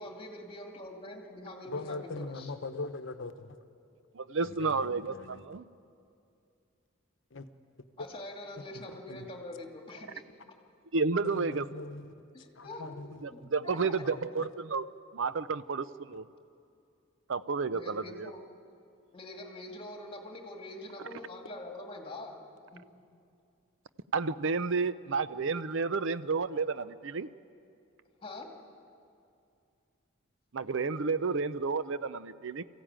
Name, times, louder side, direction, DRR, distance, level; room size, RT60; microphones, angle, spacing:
voice 1, 0.0-2.5 8.0-10.2 12.3-13.0 13.3-14.0 17.7-18.4 19.1-22.4 22.7-22.8 28.2-28.6, left 1 dB, 25° left, 2 dB, 2.2 m, -44 dB
voice 2, 1.7-3.6 4.4-5.5 7.3-7.5 8.6-9.3 11.2-12.1 12.5-13.2, left 3 dB, 65° left, 9 dB, 1.0 m, -41 dB
voice 3, 4.1-5.6 10.9-11.7 13.2-14.9 15.1-16.2 17.3-18.3 24.1-27.3 30.5-32.6, right 4 dB, 65° right, 14 dB, 0.6 m, -31 dB
23.0 x 15.0 x 8.9 m, 2.5 s
head